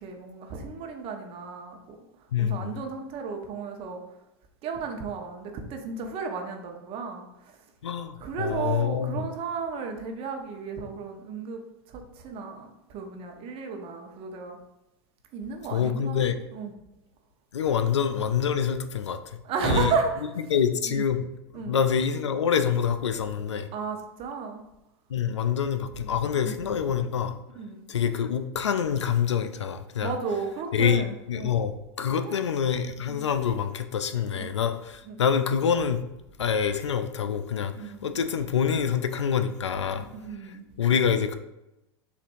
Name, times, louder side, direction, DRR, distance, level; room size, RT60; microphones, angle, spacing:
voice 1, 0.0-2.0 2.4-4.0 4.6-7.6 8.2-11.6 11.9-14.6 15.3-16.2 16.5-16.7 19.4-20.3 20.8-21.0 21.5-21.8 23.7-24.6 26.3-26.8 27.5-27.9 30.0-31.5 32.1-32.4 33.1-33.2 34.3-34.5 35.1-35.2 37.8-38.3 39.9-40.6, right 5 dB, 40° right, 3 dB, 0.8 m, -33 dB
voice 2, 2.3-2.7 7.8-9.2 15.7-16.4 17.5-19.4 19.6-19.9 20.5-21.3 21.5-23.7 25.1-27.4 27.9-30.1 30.7-36.0 36.4-40.1 40.8-41.4, left 7 dB, 90° left, 10 dB, 0.4 m, -26 dB
6.7 x 2.5 x 2.6 m, 0.92 s
hypercardioid pair, 100°, 15 cm